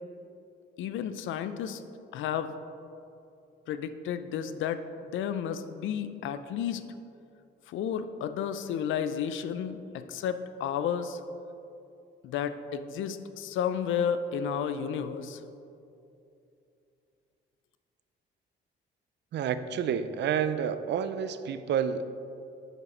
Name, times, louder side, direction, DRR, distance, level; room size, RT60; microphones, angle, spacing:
voice 1, 0.8-1.8 2.1-2.6 3.7-6.8 7.7-11.2 12.2-15.4, left 8 dB, 80° left, 11 dB, 0.5 m, -32 dB
voice 2, 19.3-22.1, right 8 dB, 60° right, 11 dB, 0.5 m, -29 dB
8.0 x 6.5 x 4.3 m, 2.7 s
cardioid pair, 90°, 20 cm